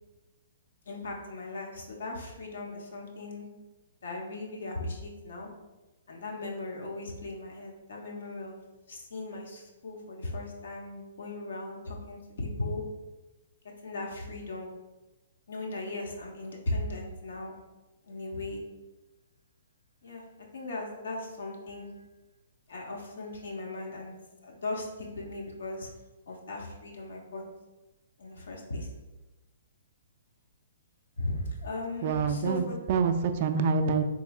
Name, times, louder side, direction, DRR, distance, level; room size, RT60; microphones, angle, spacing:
voice 1, 0.9-3.5 4.0-5.5 6.1-8.6 8.9-12.8 13.8-14.7 15.5-17.5 18.0-18.6 20.0-20.2 20.5-21.9 22.7-24.1 24.4-25.9 26.3-27.4 28.2-28.9 31.2-32.8, left 2 dB, 75° left, 0 dB, 0.7 m, -37 dB
voice 2, 32.0-34.0, right 5 dB, 50° right, 7 dB, 0.3 m, -26 dB
3.5 x 3.1 x 2.3 m, 1.1 s
hypercardioid pair, 130°, 0 cm